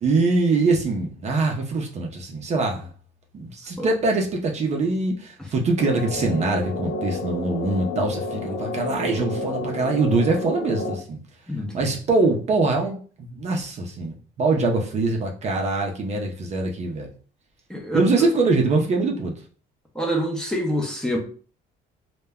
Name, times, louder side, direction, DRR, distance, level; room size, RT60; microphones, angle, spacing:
voice 1, 0.0-2.9 3.3-11.2 11.7-17.1 17.9-19.3, right 3 dB, 40° right, 0.5 m, -23 dB
sound 1, 5.8-10.9, left 2 dB, 75° left, 0.5 m, -30 dB
voice 2, 11.5-11.9 17.7-18.3 19.9-21.2, equal, 5° left, 0.6 m, -26 dB
2.1 x 2.1 x 3.4 m
cardioid pair, 110°, 17 cm